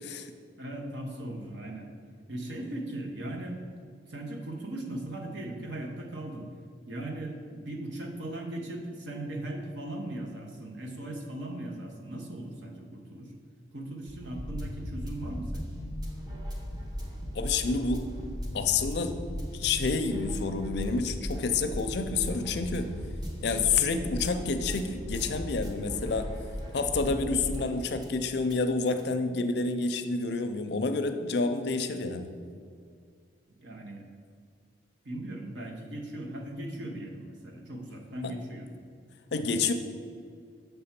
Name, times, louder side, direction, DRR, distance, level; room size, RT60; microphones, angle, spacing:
voice 1, 0.6-1.9 2.3-3.6 4.1-6.5 6.9-13.3 13.7-15.7 33.6-34.0 35.0-38.7, right 1 dB, 70° right, 2 dB, 1.0 m, -38 dB
sound 1, 14.1-28.2 28.5-28.6 29.0-29.1, equal, 20° right, 0.9 m, -37 dB
voice 2, 17.3-18.0 18.5-19.2 19.5-22.9 23.4-26.3 26.7-32.3 38.2-38.3 39.3-39.7, left 4 dB, 60° left, 8 dB, 0.4 m, -29 dB
6.8 x 3.4 x 5.8 m, 2.2 s
head